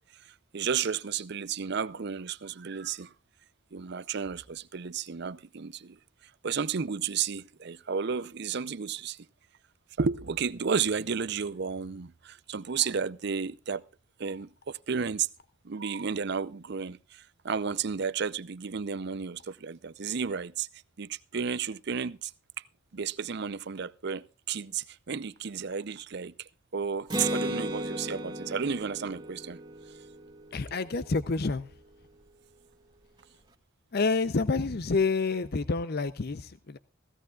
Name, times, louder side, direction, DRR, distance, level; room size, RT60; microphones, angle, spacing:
voice 1, 0.1-3.1 3.7-6.0 6.4-9.2 10.0-13.8 14.2-15.3 15.6-20.7 21.0-22.3 22.9-29.6, right 6 dB, 55° right, 0.6 m, -32 dB
Acoustic guitar, 27.1-30.8, equal, 20° right, 2.0 m, -35 dB
voice 2, 30.5-31.7 33.9-36.8, left 4 dB, 50° left, 0.6 m, -28 dB
16.5 x 16.0 x 2.4 m
head